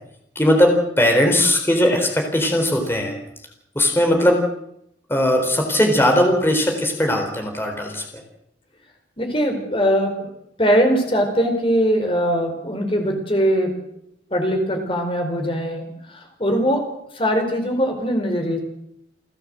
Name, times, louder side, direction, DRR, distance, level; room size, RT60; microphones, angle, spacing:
voice 1, 0.4-3.1 3.7-4.4 5.1-8.0, left 1 dB, 15° left, 3 dB, 4.1 m, -18 dB
voice 2, 9.2-10.3 10.6-13.7 14.3-16.8 17.1-18.6, equal, 30° left, 4 dB, 4.5 m, -21 dB
29.5 x 13.0 x 7.7 m, 0.77 s
head